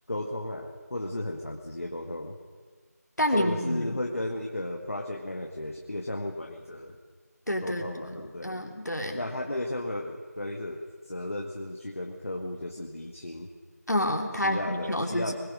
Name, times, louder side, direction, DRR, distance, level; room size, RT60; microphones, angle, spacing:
voice 1, 0.1-2.4 3.3-7.0 7.6-8.6 9.1-13.5 14.4-15.4, left 1 dB, 55° left, 1 dB, 1.8 m, -34 dB
voice 2, 3.2-4.0 7.5-9.2 13.9-15.4, left 1 dB, 90° left, 2 dB, 3.1 m, -29 dB
21.0 x 21.0 x 6.4 m, 1.5 s
figure-of-eight pair, 170°, 9 cm